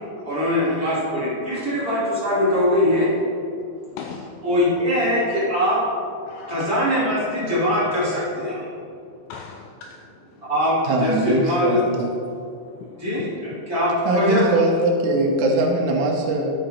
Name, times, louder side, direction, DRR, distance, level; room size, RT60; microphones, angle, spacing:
voice 1, 0.2-1.2 1.4-3.1 4.4-5.8 6.5-8.6 10.5-11.8 13.0-13.2 13.7-14.5, left 1 dB, 25° right, -9 dB, 2.3 m, -21 dB
voice 2, 3.9-4.4 4.8-5.2 6.3-6.8 9.3-10.0 12.7-13.6, left 6 dB, 85° left, 3 dB, 2.6 m, -39 dB
voice 3, 10.9-12.1 14.1-16.5, right 2 dB, 80° right, 1 dB, 3.5 m, -21 dB
11.5 x 7.4 x 4.4 m, 2.4 s
omnidirectional pair, 5.7 m